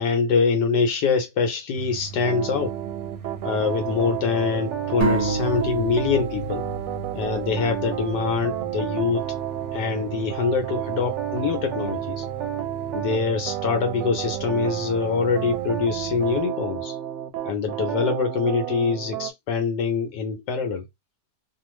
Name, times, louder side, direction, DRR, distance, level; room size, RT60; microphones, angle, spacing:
voice 1, 0.0-2.7 3.4-6.6 7.1-9.2 9.7-12.2 12.9-17.0 17.5-20.8, left 5 dB, 75° left, 1.2 m, -24 dB
sound 1, 1.7-16.4, right 6 dB, 70° right, 0.9 m, -38 dB
sound 2, 2.2-19.3, right 11 dB, 90° right, 1.3 m, -31 dB
sound 3, 5.0-8.6, right 3 dB, 30° right, 0.8 m, -30 dB
2.7 x 2.4 x 3.0 m
omnidirectional pair, 1.9 m